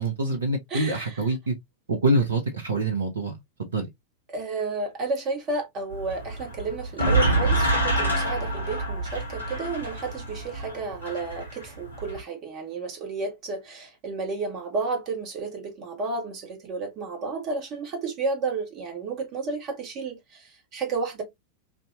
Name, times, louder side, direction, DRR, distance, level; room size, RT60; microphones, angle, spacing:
voice 1, 0.0-1.5 1.9-3.3 3.6-3.9, right 2 dB, 70° right, 0.8 m, -25 dB
voice 2, 0.7-1.2 4.3-21.2, right 4 dB, 35° right, 1.6 m, -32 dB
sound 1, 5.9-12.2, right 1 dB, 85° left, 1.2 m, -27 dB
3.3 x 2.7 x 2.6 m
figure-of-eight pair, 90°, 0 cm